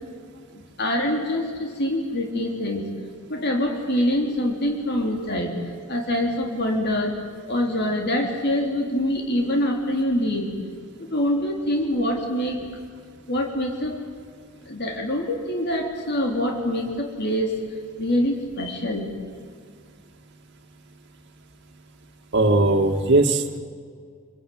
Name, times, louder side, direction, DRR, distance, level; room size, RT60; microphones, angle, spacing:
voice 1, 0.5-2.9 3.3-5.5 5.9-7.2 7.5-10.5 11.1-12.6 13.3-14.1 14.6-17.6 18.0-19.1, left 1 dB, 50° left, 2 dB, 3.4 m, -25 dB
voice 2, 22.3-23.6, right 2 dB, 55° right, 3 dB, 2.3 m, -19 dB
28.0 x 22.0 x 9.4 m, 2.1 s
head